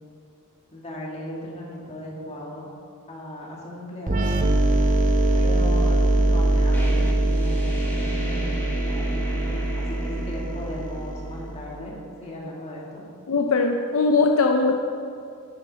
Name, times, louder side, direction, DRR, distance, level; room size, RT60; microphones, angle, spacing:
voice 1, 0.7-2.7 3.1-4.3 5.3-13.0, left 1 dB, 30° left, -3 dB, 1.9 m, -37 dB
sound 1, 4.1-11.6, right 1 dB, 35° right, 0.6 m, -22 dB
sound 2, 6.7-12.2, equal, 10° left, 1.3 m, -36 dB
voice 2, 13.3-14.7, left 3 dB, 65° left, 3 dB, 0.6 m, -20 dB
9.7 x 9.6 x 4.1 m, 2.4 s
head